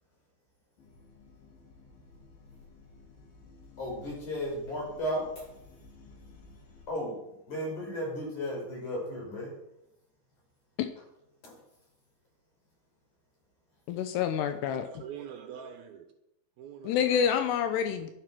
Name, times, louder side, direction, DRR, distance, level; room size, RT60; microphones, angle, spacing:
sound 1, 0.8-6.9, left 3 dB, 65° left, 4.3 m, -55 dB
voice 1, 3.8-5.5 6.9-7.2 7.5-9.5 11.4-11.6, equal, 45° left, -2 dB, 6.2 m, -34 dB
voice 2, 13.9-14.9 16.8-18.1, left 8 dB, 80° left, 8 dB, 2.9 m, -27 dB
voice 3, 14.8-16.1 16.6-17.2, right 8 dB, 70° right, 6 dB, 2.5 m, -44 dB
12.0 x 11.0 x 6.0 m, 0.86 s
omnidirectional pair, 4.9 m